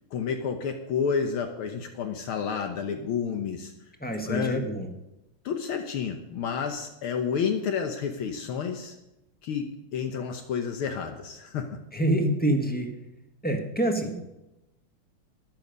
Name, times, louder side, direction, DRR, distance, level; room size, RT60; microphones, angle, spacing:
voice 1, 0.1-3.7 4.3-4.7 5.5-9.0 9.4-11.8, left 6 dB, 75° left, 5 dB, 1.8 m, -30 dB
voice 2, 4.0-4.9 11.9-12.9 13.4-14.2, right 1 dB, 5° left, 3 dB, 1.0 m, -26 dB
13.5 x 10.5 x 5.3 m, 0.94 s
omnidirectional pair, 2.4 m